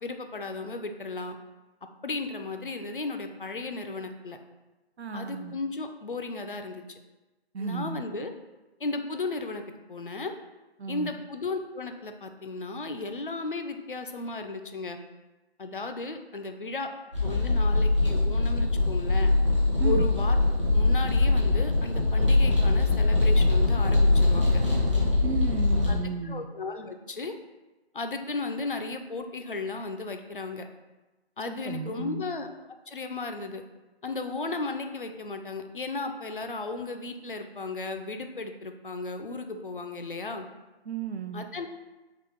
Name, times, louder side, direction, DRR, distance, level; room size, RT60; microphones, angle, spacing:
voice 1, 0.0-1.4 2.0-4.4 5.1-7.0 7.6-8.3 8.8-9.6 9.9-10.3 10.9-15.0 15.6-16.9 17.2-19.3 19.8-20.4 20.7-24.6 25.9-27.3 27.9-30.7 31.4-32.5 32.9-33.6 34.0-40.5 41.3-41.7, left 3 dB, 55° left, 6 dB, 0.4 m, -35 dB
voice 2, 5.0-5.5 7.5-8.0 10.8-11.1 19.8-20.1 25.2-26.5 31.5-32.2 40.9-41.5, right 5 dB, 80° right, 8 dB, 0.5 m, -33 dB
sound 1, 17.1-26.0, left 2 dB, 30° right, 0.8 m, -22 dB
3.7 x 3.3 x 3.7 m, 1.1 s
figure-of-eight pair, 175°, 32 cm